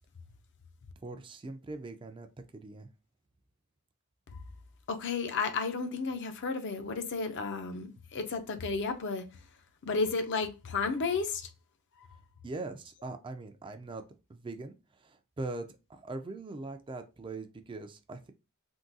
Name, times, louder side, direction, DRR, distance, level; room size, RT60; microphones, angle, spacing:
voice 1, 1.0-2.3 2.5-2.9 12.4-14.0 14.3-18.3, right 2 dB, 25° right, 0.3 m, -41 dB
voice 2, 4.9-9.3 9.8-11.5 12.0-12.1, left 4 dB, 55° left, 0.5 m, -32 dB
3.6 x 2.2 x 2.6 m
head